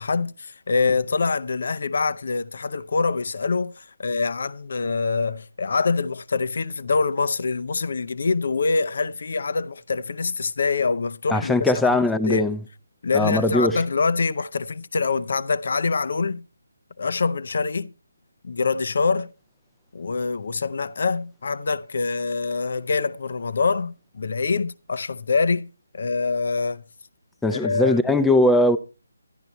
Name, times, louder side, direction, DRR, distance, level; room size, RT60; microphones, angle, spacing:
voice 1, 0.0-11.5 11.8-12.0 12.3-12.5 13.0-16.5 17.0-17.9 18.4-19.3 19.9-25.7 25.9-26.8 27.5-28.0, left 4 dB, 55° left, 0.6 m, -25 dB
voice 2, 11.3-12.6 13.1-13.8 27.4-28.8, left 2 dB, 5° left, 0.6 m, -20 dB
12.0 x 10.5 x 4.2 m
figure-of-eight pair, 150°, 0 cm